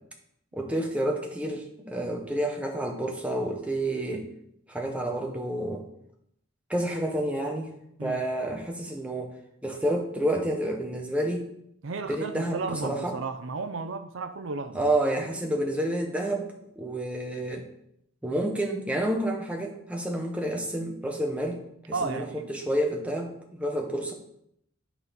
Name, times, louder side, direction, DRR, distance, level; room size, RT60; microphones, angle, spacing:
voice 1, 0.5-4.2 4.7-5.8 6.7-7.7 8.0-9.3 9.6-11.5 12.1-13.2 14.7-16.5 16.8-17.7 18.2-24.1, right 1 dB, 5° right, 1 dB, 1.1 m, -29 dB
voice 2, 11.8-14.8 21.9-22.5, right 4 dB, 65° right, 9 dB, 0.6 m, -33 dB
11.0 x 4.1 x 5.2 m, 0.74 s
head